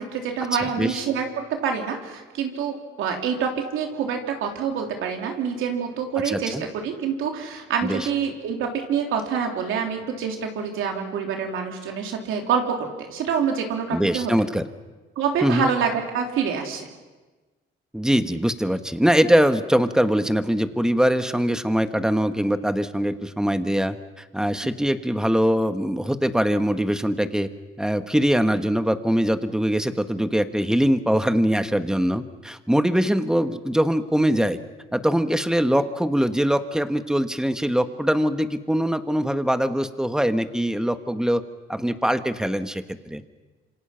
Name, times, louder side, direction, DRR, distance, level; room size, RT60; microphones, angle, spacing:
voice 1, 0.0-6.6 6.8-14.3 15.2-16.9, right 6 dB, 85° right, 2 dB, 3.4 m, -26 dB
voice 2, 0.6-1.0 6.2-6.6 7.8-8.1 13.9-14.6 15.4-15.7 17.9-27.5 27.8-34.6 34.9-41.4 41.7-43.2, equal, 5° right, 9 dB, 1.4 m, -22 dB
27.0 x 26.0 x 5.8 m, 1.2 s
cardioid pair, 90°, 20 cm